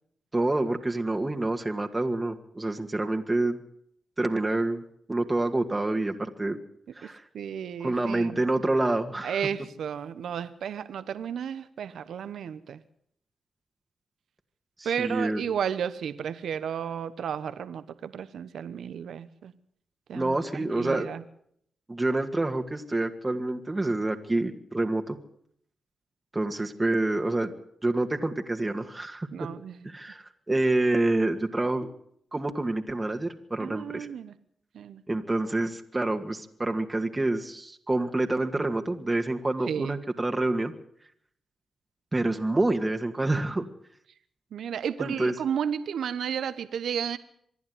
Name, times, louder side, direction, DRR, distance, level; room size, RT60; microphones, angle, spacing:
voice 1, 0.3-3.6 4.2-4.8 5.1-6.6 7.0-7.2 7.8-9.4 14.8-15.4 20.1-21.1 21.9-25.2 26.3-27.5 27.8-29.5 29.8-31.9 32.3-34.1 35.1-40.7 42.1-43.6 45.0-45.3, right 2 dB, 25° right, 4 dB, 2.1 m, -27 dB
voice 2, 7.0-8.4 9.2-12.8 14.8-19.5 20.1-21.2 29.3-29.9 33.6-34.3 34.7-35.0 39.7-40.0 44.5-47.2, right 8 dB, 80° right, 13 dB, 1.0 m, -33 dB
25.5 x 11.0 x 9.5 m, 0.67 s
supercardioid pair, 50°, 0 cm